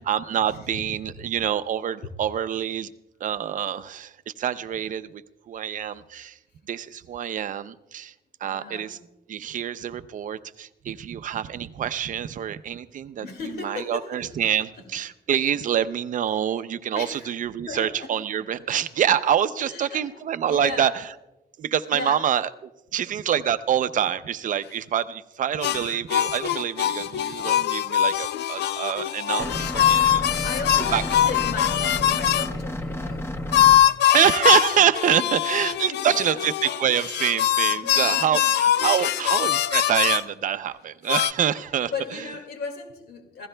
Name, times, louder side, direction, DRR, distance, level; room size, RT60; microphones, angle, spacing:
voice 1, 0.0-2.9 3.2-6.4 6.7-8.1 8.4-9.0 9.3-13.3 13.6-21.1 21.6-30.5 30.9-31.0 34.1-42.3, right 9 dB, 50° right, 13 dB, 0.5 m, -26 dB
voice 2, 8.4-8.9 13.2-14.3 16.9-17.3 17.7-18.1 18.5-18.6 19.6-20.0 20.5-20.9 21.9-22.2 30.1-33.3 35.2-35.3 35.8-36.5 37.8-38.2 39.0-39.1 41.9-43.5, left 4 dB, 70° left, 5 dB, 2.1 m, -36 dB
sound 1, 25.6-32.5 33.5-40.2 41.1-41.3, left 11 dB, 90° left, 0.5 m, -22 dB
sound 2, 29.4-33.8, left 1 dB, 15° left, 0.8 m, -31 dB
28.5 x 16.0 x 2.2 m, 0.96 s
wide cardioid pair, 175°, 17 cm